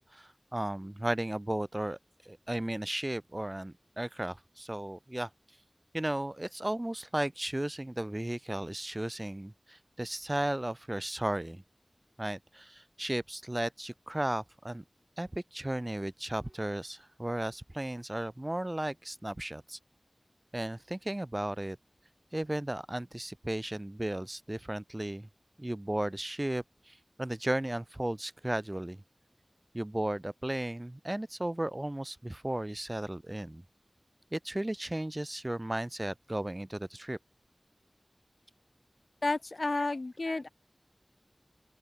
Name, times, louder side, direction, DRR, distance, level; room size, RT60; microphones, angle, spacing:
voice 1, 0.1-2.0 2.2-5.3 5.9-11.6 12.2-14.8 15.2-19.8 20.5-21.8 22.3-25.3 25.6-29.0 29.7-33.6 34.3-37.2 39.8-39.9 40.3-40.4, right 1 dB, 30° right, 0.3 m, -35 dB
voice 2, 39.2-40.5, left 2 dB, 80° left, 0.9 m, -31 dB
open air
wide cardioid pair, 50°, 0 cm